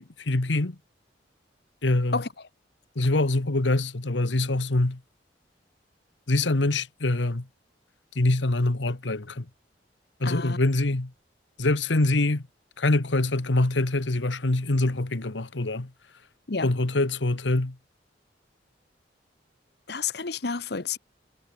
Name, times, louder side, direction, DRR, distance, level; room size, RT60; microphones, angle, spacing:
voice 1, 0.2-0.8 1.8-2.2 2.9-5.0 6.3-7.5 8.1-9.5 10.2-11.1 11.6-12.5 12.8-15.9 16.6-17.8, left 2 dB, 90° left, 1.4 m, -24 dB
voice 2, 10.2-10.6 16.5-16.7 19.9-21.0, left 4 dB, 60° left, 1.2 m, -30 dB
head